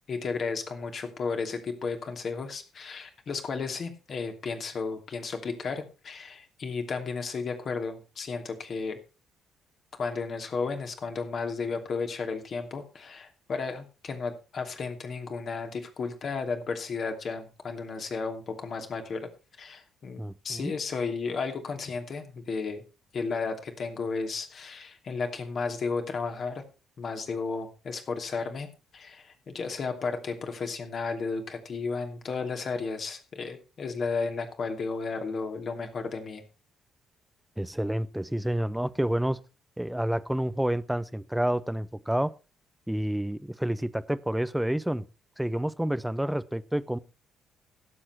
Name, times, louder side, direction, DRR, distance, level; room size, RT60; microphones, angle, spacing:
voice 1, 0.1-9.0 9.9-19.3 19.6-22.8 23.1-26.6 27.0-36.4, left 4 dB, 50° left, 2.8 m, -33 dB
voice 2, 20.2-20.7 37.6-39.4 39.8-42.3 42.9-45.0 45.4-47.0, right 1 dB, 5° right, 0.9 m, -29 dB
17.0 x 7.8 x 4.4 m
figure-of-eight pair, 45°, 0 cm